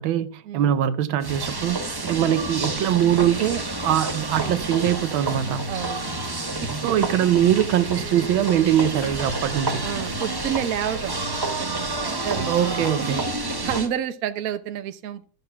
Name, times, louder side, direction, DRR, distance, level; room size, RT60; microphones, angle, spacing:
voice 1, 0.0-5.7 6.8-9.8 12.5-13.2, right 11 dB, 75° right, 1.5 m, -22 dB
sound 1, 1.2-13.9, right 2 dB, 25° right, 0.4 m, -29 dB
sound 2, 3.3-13.6, left 5 dB, 85° left, 2.5 m, -47 dB
voice 2, 5.7-6.1 6.6-6.9 9.8-11.1 11.6-12.8 13.6-15.2, right 10 dB, 60° right, 1.0 m, -30 dB
13.5 x 6.7 x 5.7 m
omnidirectional pair, 2.3 m